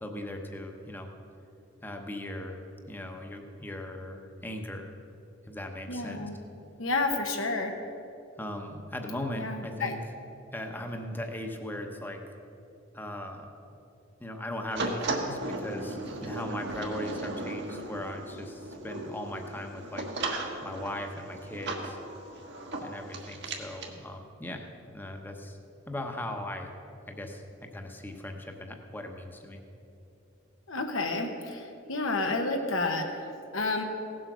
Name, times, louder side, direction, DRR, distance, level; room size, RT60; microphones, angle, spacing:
voice 1, 0.0-1.1 1.8-4.9 5.5-6.3 8.4-10.0 10.5-12.2 12.9-13.5 14.2-20.1 20.6-22.0 22.8-24.7 24.9-25.6 25.9-26.7 27.1-27.4 27.7-29.6, left 1 dB, 10° left, 3 dB, 0.9 m, -38 dB
voice 2, 5.9-6.4 6.8-7.7 9.3-9.9 30.7-33.8, left 3 dB, 80° left, 3 dB, 1.1 m, -30 dB
sound 1, 14.7-23.9, right 2 dB, 60° right, 1.5 m, -36 dB
16.5 x 7.7 x 6.2 m, 2.8 s
head